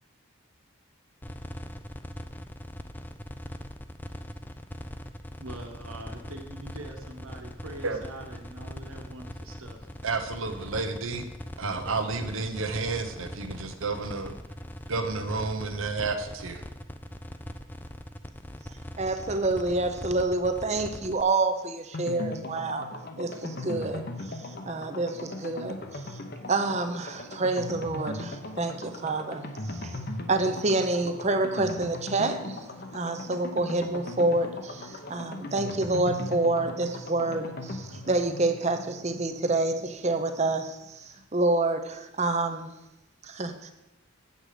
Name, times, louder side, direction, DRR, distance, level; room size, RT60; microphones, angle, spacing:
sound 1, 1.2-21.2, equal, 10° left, 0.4 m, -41 dB
voice 1, 5.4-9.9, right 1 dB, 90° right, 3 dB, 1.6 m, -43 dB
voice 2, 10.0-11.3 11.6-14.3 14.9-16.6, right 3 dB, 70° right, 7 dB, 1.0 m, -31 dB
voice 3, 19.0-22.9 23.2-24.4 24.7-26.2 26.5-30.0 30.3-32.7 32.9-41.0 41.3-42.7 43.2-43.7, right 2 dB, 30° right, 7 dB, 0.7 m, -28 dB
sound 2, 21.9-40.5 40.8-40.9 41.2-41.3, left 2 dB, 45° left, 0.8 m, -39 dB
8.0 x 7.7 x 5.0 m, 0.92 s
head